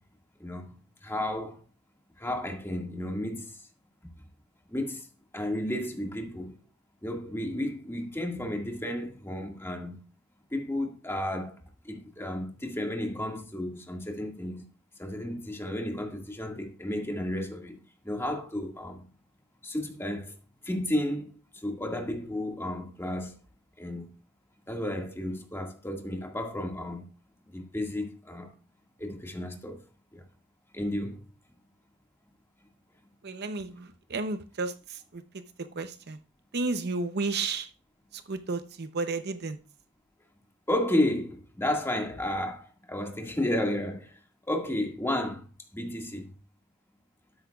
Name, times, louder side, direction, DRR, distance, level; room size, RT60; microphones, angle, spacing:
voice 1, 0.4-0.8 1.0-1.6 2.2-3.6 4.7-5.1 5.3-6.6 7.0-10.0 10.5-11.6 11.8-14.7 15.0-17.8 18.0-19.1 19.6-20.3 20.6-23.4 23.8-24.1 24.7-27.0 27.5-28.5 29.0-29.8 30.1-30.2 30.7-31.2 40.7-44.2 44.5-45.4 45.7-46.3, left 1 dB, 10° left, 1.9 m, -32 dB
voice 2, 33.2-35.4 35.8-36.2 36.5-37.7 38.1-39.6, right 3 dB, 55° right, 0.7 m, -32 dB
13.0 x 9.9 x 2.4 m
head